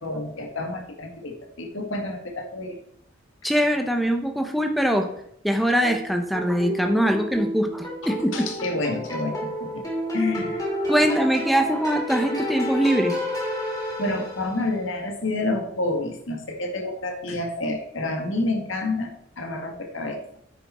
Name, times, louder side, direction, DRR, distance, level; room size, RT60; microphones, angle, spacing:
voice 1, 0.0-2.8 8.0-9.8 10.1-10.6 11.0-11.1 14.0-20.2, left 2 dB, 75° left, 3 dB, 1.8 m, -29 dB
voice 2, 3.4-5.1 5.4-8.5 10.9-13.2, equal, ahead, 5 dB, 0.9 m, -22 dB
sound 1, 5.8-14.7, equal, 20° left, 2.8 m, -31 dB
9.2 x 7.0 x 4.3 m, 0.72 s
head